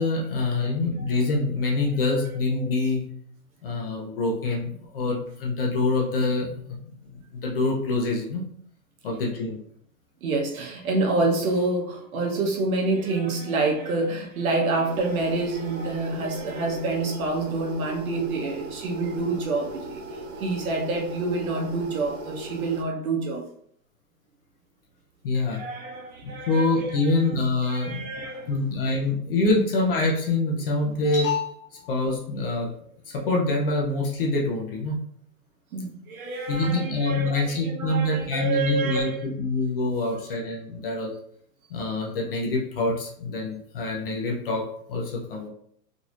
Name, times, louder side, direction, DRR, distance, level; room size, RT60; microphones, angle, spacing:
voice 1, 0.0-3.0 3.6-6.8 7.1-8.4 9.0-9.6 25.2-25.6 26.2-32.7 33.1-35.0 36.5-41.1 41.7-45.5, left 2 dB, 35° left, -1 dB, 0.7 m, -25 dB
voice 2, 10.2-20.0 20.4-23.4 25.5-27.2 27.7-28.5 35.7-39.2, right 3 dB, 60° right, 1 dB, 1.0 m, -27 dB
sound 1, 14.8-22.8, right 3 dB, 45° right, 0.5 m, -38 dB
3.8 x 3.1 x 2.5 m, 0.64 s
hypercardioid pair, 160°, 48 cm